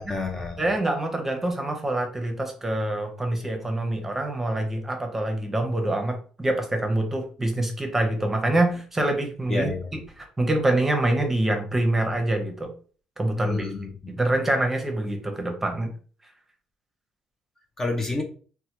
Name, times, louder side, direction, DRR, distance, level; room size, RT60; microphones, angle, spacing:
voice 1, 0.0-0.6 9.5-9.9 13.4-13.9 17.8-18.2, left 3 dB, 25° left, 2 dB, 0.5 m, -29 dB
voice 2, 0.6-12.7 13.2-13.7 14.1-15.9, right 1 dB, 15° right, 4 dB, 0.7 m, -25 dB
3.1 x 2.2 x 2.9 m, 0.40 s
cardioid pair, 110°, 2 cm